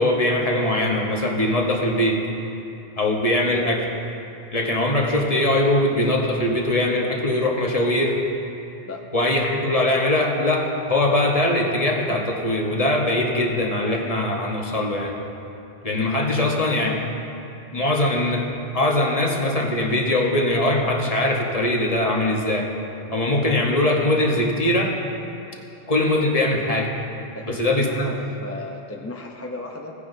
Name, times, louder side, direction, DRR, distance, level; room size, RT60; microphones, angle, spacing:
voice 1, 0.0-2.2 3.0-3.9 4.5-8.2 9.1-15.1 15.8-17.0 17.7-18.5 18.7-22.7 23.1-24.9 25.9-26.9 27.5-28.1, left 1 dB, 35° left, 0 dB, 1.1 m, -21 dB
voice 2, 27.3-29.9, left 2 dB, 20° left, 0 dB, 0.5 m, -35 dB
17.0 x 9.7 x 2.6 m, 2.8 s
omnidirectional pair, 1.0 m